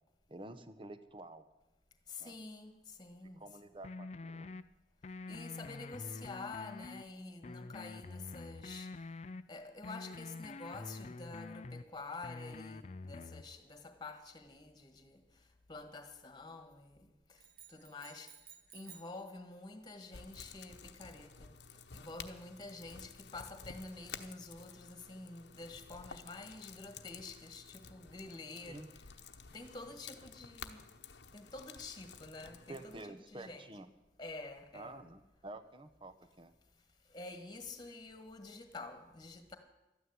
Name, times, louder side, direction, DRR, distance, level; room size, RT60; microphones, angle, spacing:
voice 1, 0.3-1.5 2.2-2.4 3.4-4.5 28.7-28.9 32.7-33.9 34.7-36.5, right 2 dB, 30° right, 0.9 m, -49 dB
voice 2, 2.1-3.4 5.3-8.9 9.5-15.2 15.7-17.4 17.7-18.3 18.7-21.5 21.9-29.0 29.5-30.8 31.3-33.7 34.2-35.0 37.1-39.6, left 3 dB, 25° left, 1.6 m, -48 dB
sound 1, 3.8-4.6 5.0-7.0 7.4-9.4 9.8-11.8 12.2-13.4, left 3 dB, 40° left, 0.5 m, -46 dB
sound 2, 17.4-19.2, right 8 dB, 55° right, 1.8 m, -56 dB
sound 3, 20.1-33.0, left 6 dB, 80° left, 1.0 m, -52 dB
12.5 x 9.5 x 9.4 m
head